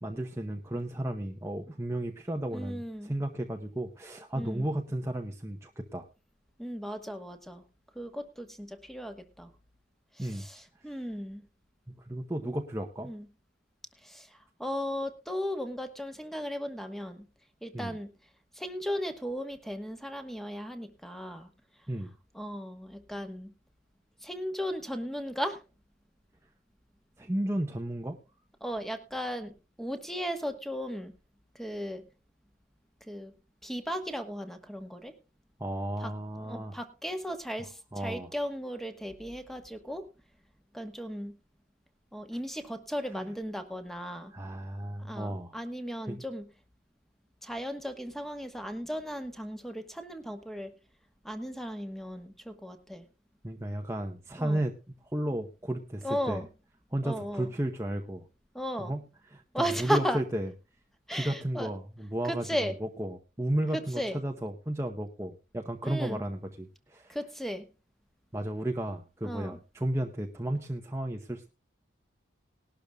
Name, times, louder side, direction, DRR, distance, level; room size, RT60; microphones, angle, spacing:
voice 1, 0.0-6.0 10.2-10.5 10.8-11.0 12.0-13.1 17.7-18.0 21.9-22.1 27.2-28.2 35.6-36.8 37.9-38.3 43.1-43.3 44.3-45.5 46.1-46.2 53.4-54.8 55.1-56.4 56.9-58.2 58.8-60.5 61.1-67.2 68.3-71.5, right 1 dB, 15° right, 3 dB, 0.8 m, -33 dB
voice 2, 2.5-3.1 4.3-4.7 6.6-7.6 7.9-9.5 10.1-11.4 13.0-13.3 14.0-17.2 17.6-18.1 18.5-21.5 22.3-23.5 24.2-25.6 28.6-31.1 31.5-32.0 33.1-33.3 33.6-35.1 36.0-36.1 36.4-40.0 40.7-41.3 42.1-44.3 45.0-46.4 47.4-50.7 51.2-53.1 54.4-54.6 56.0-56.5 57.0-57.5 58.5-58.9 59.5-60.2 61.1-61.7 62.2-62.7 63.7-64.2 65.8-66.2 67.1-67.7 69.2-69.6, equal, ahead, 8 dB, 1.2 m, -36 dB
19.5 x 12.0 x 2.3 m, 0.30 s
head